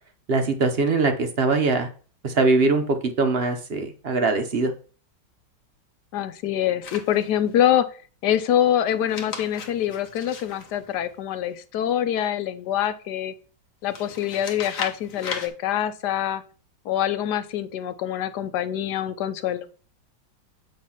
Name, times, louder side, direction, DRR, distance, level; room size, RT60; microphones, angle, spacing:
voice 1, 0.3-1.9 2.2-4.7, right 3 dB, 55° right, 7 dB, 0.6 m, -22 dB
voice 2, 6.1-7.9 8.2-13.3 13.8-16.4 16.8-19.6, left 11 dB, 70° left, 12 dB, 1.2 m, -25 dB
sound 1, 6.8-7.6 8.9-11.5 13.9-15.5, left 5 dB, 50° left, 1.3 m, -37 dB
8.0 x 3.1 x 5.7 m, 0.39 s
omnidirectional pair, 2.0 m